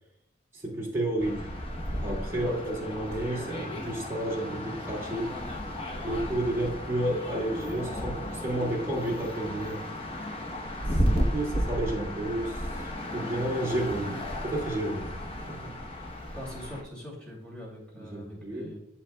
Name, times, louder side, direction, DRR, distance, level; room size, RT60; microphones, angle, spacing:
voice 1, 0.5-1.5 2.0-5.4 6.0-9.8 10.9-12.6 13.1-15.2 15.5-15.8 17.9-18.8, right 1 dB, 15° right, -4 dB, 2.1 m, -31 dB
sound 1, 1.2-16.8, equal, 30° left, 0.9 m, -34 dB
voice 2, 16.3-18.8, equal, 5° left, -4 dB, 2.6 m, -42 dB
7.7 x 7.6 x 2.2 m, 0.77 s
head